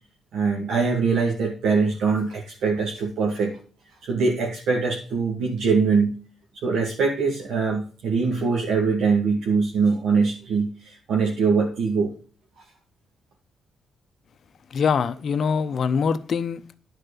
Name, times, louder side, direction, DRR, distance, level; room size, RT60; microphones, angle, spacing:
voice 1, 0.3-3.6 4.0-6.2 6.5-12.1, right 4 dB, 75° right, 1.9 m, -23 dB
voice 2, 14.7-16.8, left 6 dB, 50° left, 0.7 m, -24 dB
10.5 x 4.5 x 6.8 m
cardioid pair, 120°, 0 cm